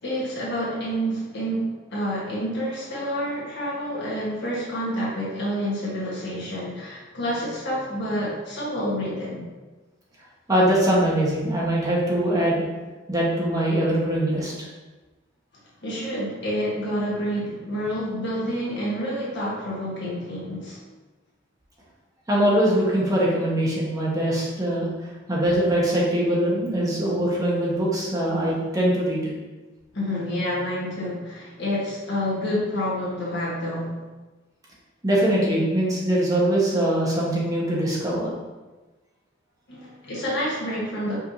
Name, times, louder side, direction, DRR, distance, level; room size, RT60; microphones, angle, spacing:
voice 1, 0.0-9.5 15.8-20.8 29.9-34.0 39.7-41.2, equal, 60° left, -7 dB, 1.5 m, -28 dB
voice 2, 10.5-12.6 13.1-14.7 22.3-24.9 25.3-29.2 35.0-38.3, right 1 dB, 20° right, -6 dB, 1.1 m, -22 dB
5.3 x 3.5 x 2.7 m, 1.2 s
head